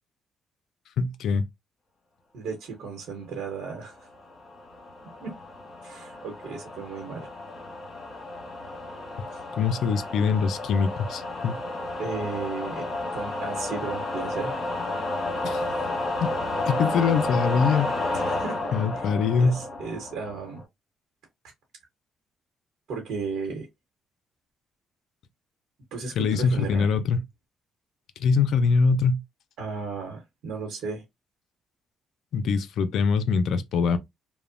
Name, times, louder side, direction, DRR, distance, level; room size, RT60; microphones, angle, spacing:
voice 1, 1.0-1.5 9.6-11.6 15.4-15.7 16.2-16.3 16.6-17.9 18.7-19.6 26.2-27.2 28.2-29.2 32.3-34.0, left 5 dB, 75° left, 0.4 m, -23 dB
voice 2, 2.3-4.0 5.2-5.3 5.8-7.3 12.0-12.9 13.1-14.5 18.1-18.6 18.9-19.1 19.4-20.6 22.9-23.7 25.9-26.9 29.6-31.0, right 4 dB, 80° right, 0.9 m, -34 dB
sound 1, 4.1-20.6, left 2 dB, 40° left, 1.4 m, -32 dB
2.9 x 2.1 x 2.5 m
cardioid pair, 90°, 0 cm